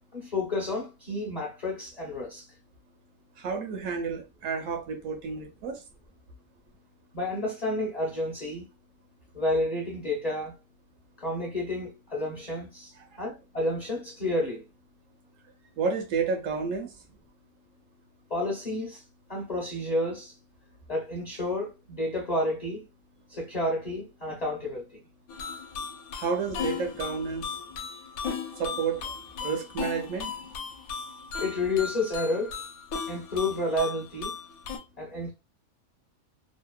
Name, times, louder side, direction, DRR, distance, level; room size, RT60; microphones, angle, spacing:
voice 1, 0.1-2.5 7.1-8.7 9.3-10.5 11.2-12.9 13.2-14.6 18.3-19.0 19.3-20.3 20.9-22.8 23.3-25.0 31.4-32.5 33.1-34.3 35.0-35.3, left 2 dB, 45° left, 0.5 m, -30 dB
voice 2, 3.4-5.8 13.0-13.2 15.8-16.9 26.1-27.6 28.6-29.1 29.4-30.3, right 5 dB, 70° right, 0.9 m, -31 dB
sound 1, 25.3-34.8, left 6 dB, 80° left, 1.0 m, -36 dB
2.8 x 2.1 x 2.2 m
omnidirectional pair, 1.5 m